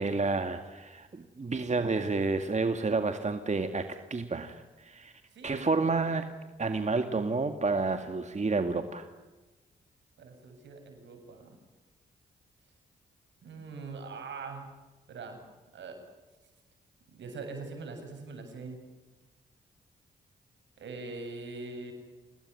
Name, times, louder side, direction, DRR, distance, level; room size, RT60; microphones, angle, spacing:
voice 1, 0.0-5.1 5.4-6.3 6.6-9.1, right 3 dB, 40° right, 7 dB, 2.1 m, -30 dB
voice 2, 5.3-6.1 10.2-11.6 13.4-14.6 15.1-15.4 15.7-16.0 17.1-18.8 20.8-21.9, right 3 dB, 75° right, 4 dB, 7.9 m, -42 dB
28.5 x 19.5 x 9.8 m, 1.2 s
supercardioid pair, 45°, 19 cm